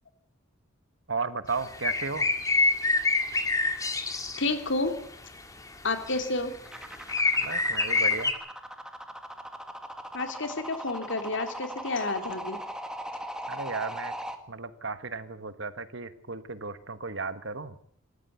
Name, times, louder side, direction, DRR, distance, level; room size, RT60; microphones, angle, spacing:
voice 1, 1.1-2.3 7.4-8.3 13.5-14.1 14.5-17.7, right 4 dB, 60° right, 12 dB, 1.5 m, -34 dB
sound 1, 1.6-4.5 6.1-6.6 7.1-8.3, left 3 dB, 15° left, 2.5 m, -26 dB
voice 2, 4.1-4.9 5.8-6.5 10.1-12.6, left 2 dB, 60° left, 7 dB, 3.0 m, -30 dB
sound 2, 6.6-14.4, equal, 5° right, 2.0 m, -39 dB
26.0 x 14.0 x 8.2 m, 0.63 s
head